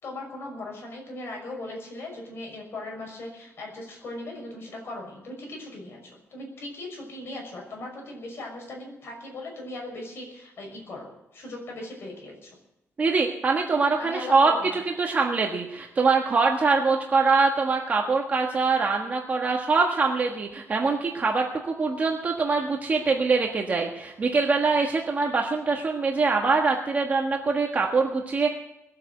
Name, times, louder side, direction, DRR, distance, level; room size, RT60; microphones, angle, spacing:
voice 1, 0.0-12.6 14.0-14.8, left 2 dB, 50° left, 0 dB, 6.1 m, -38 dB
voice 2, 13.0-28.5, right 4 dB, 30° right, 1 dB, 1.4 m, -23 dB
20.5 x 8.7 x 7.8 m, 0.90 s
wide cardioid pair, 160°, 5 cm